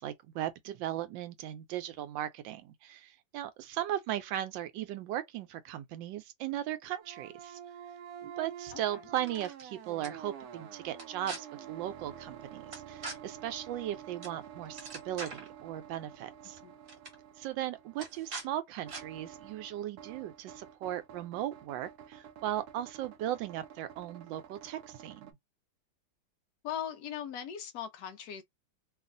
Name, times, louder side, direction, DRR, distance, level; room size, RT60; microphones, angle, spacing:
voice 1, 0.0-7.6 8.2-16.6 17.4-25.3, right 12 dB, 90° right, 1.3 m, -37 dB
sound 1, 7.0-25.3, right 9 dB, 70° right, 0.9 m, -49 dB
sound 2, 9.2-9.6 10.0-10.1 10.9-11.4 12.7-13.2 14.2-14.4 14.6-15.5 16.4-16.6 16.9-17.1 18.0-18.5 18.9-19.0, right 3 dB, 40° right, 0.9 m, -42 dB
voice 2, 16.4-16.8 26.6-28.4, left 9 dB, 70° left, 0.9 m, -39 dB
3.0 x 2.4 x 2.5 m
omnidirectional pair, 2.0 m